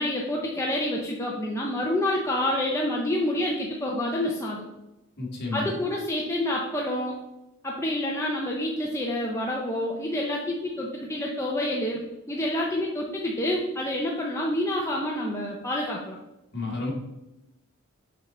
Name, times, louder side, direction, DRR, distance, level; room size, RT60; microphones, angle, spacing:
voice 1, 0.0-4.6 5.5-7.2 7.6-16.2, left 1 dB, 15° left, -2 dB, 0.6 m, -28 dB
voice 2, 5.2-5.8 16.5-16.9, left 3 dB, 50° left, -2 dB, 1.9 m, -31 dB
6.8 x 4.0 x 4.2 m, 0.94 s
head